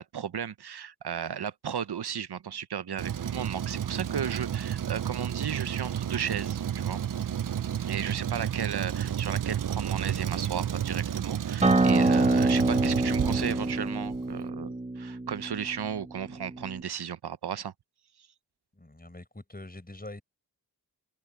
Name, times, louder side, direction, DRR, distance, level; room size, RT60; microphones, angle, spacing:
voice 1, 0.0-7.0 7.8-14.7 15.0-17.7, right 8 dB, 85° right, 0.8 m, -35 dB
Truck, 3.0-14.2, right 9 dB, 55° right, 0.5 m, -31 dB
Acoustic guitar, 11.6-16.8, right 2 dB, 20° right, 1.2 m, -26 dB
voice 2, 18.7-20.2, left 1 dB, 25° left, 6.2 m, -44 dB
wide cardioid pair, 60°, 38 cm